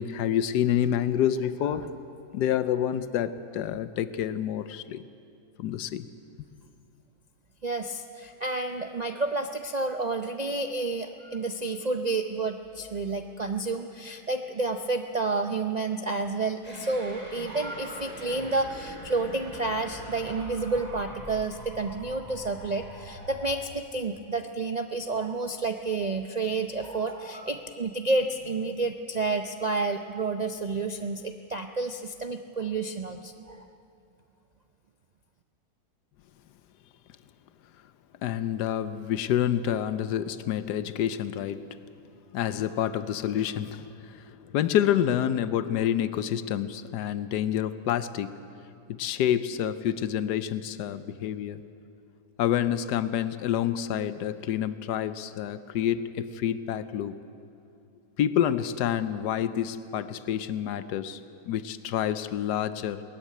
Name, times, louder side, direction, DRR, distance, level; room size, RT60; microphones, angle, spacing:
voice 1, 0.0-2.0 2.3-5.0 5.6-6.1 38.2-41.8 42.3-48.5 48.9-51.6 52.4-57.2 58.2-61.2 61.4-63.0, left 10 dB, 90° left, 13 dB, 1.3 m, -28 dB
voice 2, 7.6-33.6, right 3 dB, 60° right, 6 dB, 0.4 m, -30 dB
sound 1, 16.6-23.6, right 1 dB, 25° left, 5.2 m, -43 dB
19.5 x 14.0 x 9.6 m, 2.6 s
omnidirectional pair, 1.7 m